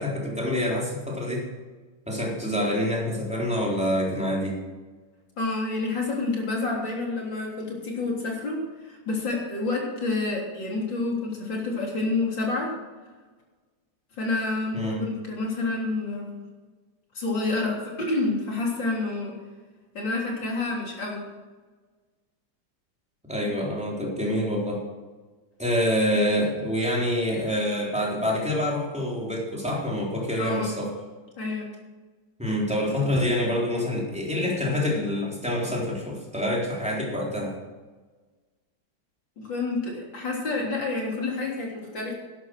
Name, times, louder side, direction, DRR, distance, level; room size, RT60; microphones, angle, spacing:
voice 1, 0.0-1.5 2.1-4.6 14.7-15.0 23.3-24.9 25.6-30.9 32.4-37.6, left 1 dB, 5° right, -4 dB, 3.8 m, -26 dB
voice 2, 5.4-8.6 8.8-12.7 14.2-16.3 17.1-19.3 19.9-21.3 30.4-30.8 31.4-31.7 39.4-42.1, left 3 dB, 75° left, -2 dB, 4.2 m, -28 dB
12.0 x 11.0 x 6.3 m, 1.3 s
omnidirectional pair, 2.0 m